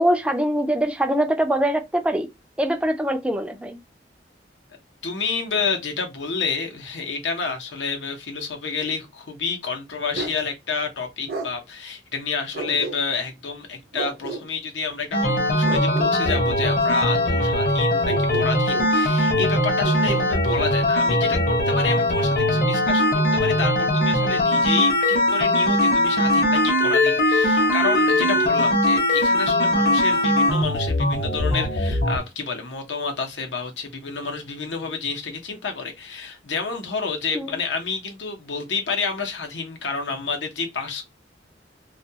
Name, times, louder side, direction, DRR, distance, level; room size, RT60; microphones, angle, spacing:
voice 1, 0.0-2.3 2.6-3.8 37.3-37.6, right 1 dB, 5° right, 0.3 m, -23 dB
voice 2, 5.0-41.0, left 5 dB, 85° left, 0.8 m, -29 dB
Bark, 10.1-10.4 11.3-11.5 12.5-13.3 13.9-14.5 15.6-16.8 18.1-19.0 19.8-20.7, right 3 dB, 60° right, 0.7 m, -32 dB
sound 1, 15.1-32.2, left 1 dB, 50° left, 0.8 m, -20 dB
2.4 x 2.2 x 2.7 m
head